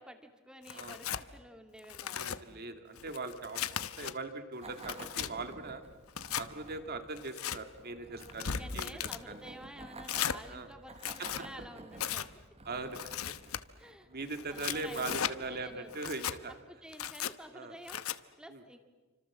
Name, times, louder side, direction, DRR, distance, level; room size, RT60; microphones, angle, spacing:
voice 1, 0.0-2.7 8.3-12.3 13.8-14.1 14.5-15.9 16.7-18.0 18.4-18.8, equal, 5° right, 6 dB, 2.4 m, -51 dB
Tearing, 0.7-1.2 1.8-2.4 3.0-4.1 4.6-5.3 6.1-6.5 7.2-7.6 8.2-9.2 10.0-10.4 10.9-11.4 12.0-12.3 12.9-13.6 14.3-15.3 15.9-16.4 16.9-17.3 17.9-18.2, left 9 dB, 85° left, 1.0 m, -36 dB
voice 2, 2.1-5.8 6.4-8.9 9.3-9.4 10.5-10.7 11.2-11.4 12.7-13.3 14.1-16.6 17.5-17.8 18.5-18.6, right 3 dB, 50° right, 7 dB, 2.4 m, -41 dB
sound 1, 4.6-16.8, right 2 dB, 30° right, 1.2 m, -52 dB
29.5 x 25.5 x 7.6 m, 1.3 s
head